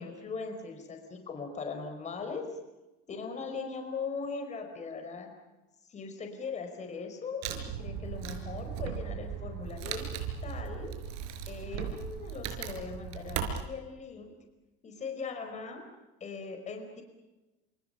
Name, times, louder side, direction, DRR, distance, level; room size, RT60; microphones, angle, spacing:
voice 1, 0.0-2.4 3.1-5.3 5.8-10.1 10.4-10.9 11.5-14.3 14.8-15.8 16.2-17.0, left 5 dB, 25° left, 5 dB, 4.9 m, -39 dB
Wood, 7.4-13.6, right 8 dB, 60° right, 5.1 m, -37 dB
29.5 x 28.0 x 5.7 m, 1.1 s
cardioid pair, 160°, 30 cm